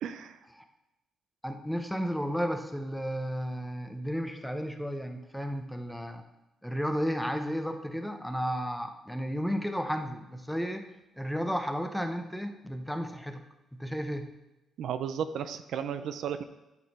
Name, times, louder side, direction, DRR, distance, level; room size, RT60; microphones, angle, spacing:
voice 1, 0.0-0.4 14.8-16.4, right 8 dB, 75° right, 10 dB, 0.4 m, -34 dB
voice 2, 1.4-6.2 6.6-10.9 11.1-13.4 13.7-14.3, equal, ahead, 6 dB, 0.7 m, -33 dB
10.5 x 4.0 x 4.1 m, 0.97 s
cardioid pair, 90°, 0 cm